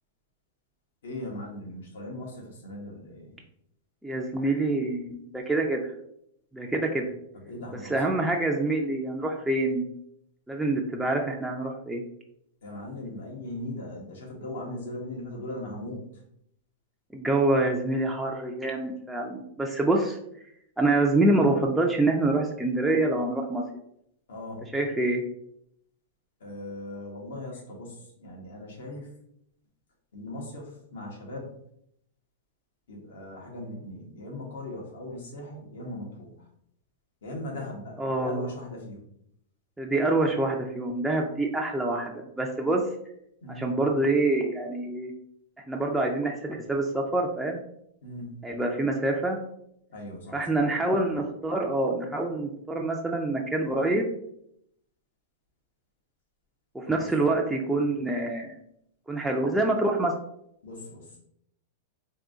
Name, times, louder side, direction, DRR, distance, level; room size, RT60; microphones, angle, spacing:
voice 1, 1.0-3.3 7.3-8.2 12.6-16.1 24.3-24.7 26.4-29.1 30.1-31.5 32.9-36.3 37.2-39.0 43.4-43.7 48.0-48.4 49.9-50.7 56.9-57.1 60.6-61.2, left 1 dB, 85° left, -1 dB, 1.5 m, -39 dB
voice 2, 4.0-5.9 6.5-7.1 7.9-9.8 10.5-12.0 17.1-20.2 20.8-23.6 24.7-25.2 38.0-38.5 39.8-42.8 43.5-45.1 45.7-47.6 48.4-49.4 50.3-54.1 56.7-58.5 59.1-60.1, right 2 dB, 5° right, -1 dB, 0.4 m, -26 dB
3.6 x 2.7 x 3.7 m, 0.73 s
supercardioid pair, 155°, 0 cm